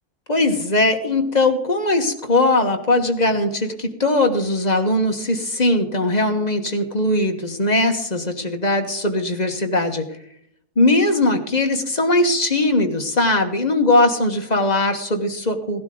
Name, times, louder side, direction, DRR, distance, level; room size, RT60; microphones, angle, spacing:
voice 1, 0.3-10.1 10.8-15.8, left 2 dB, 30° left, 4 dB, 1.4 m, -20 dB
16.5 x 12.0 x 3.9 m, 0.71 s
omnidirectional pair, 1.7 m